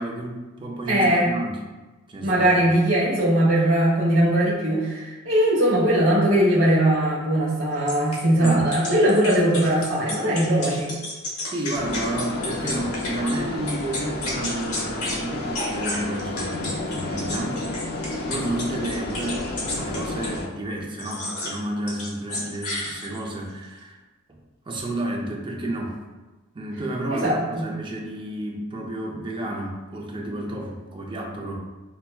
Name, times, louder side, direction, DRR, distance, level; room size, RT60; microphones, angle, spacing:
voice 1, 0.0-1.6 2.1-2.8 8.4-8.7 11.4-17.6 18.3-24.0 24.3-24.4 24.7-26.0 26.5-31.6, right 1 dB, 25° right, -1 dB, 0.5 m, -31 dB
voice 2, 0.9-1.3 2.2-10.9 27.1-27.6, right 1 dB, 65° right, -9 dB, 0.9 m, -20 dB
sound 1, 7.9-13.4 13.7-15.2 15.5-20.4 21.0-21.6 21.9-23.3, left 2 dB, 85° left, 0.9 m, -32 dB
sound 2, 11.7-20.5, left 2 dB, 45° left, 0.4 m, -31 dB
5.6 x 2.1 x 2.2 m, 1.2 s
head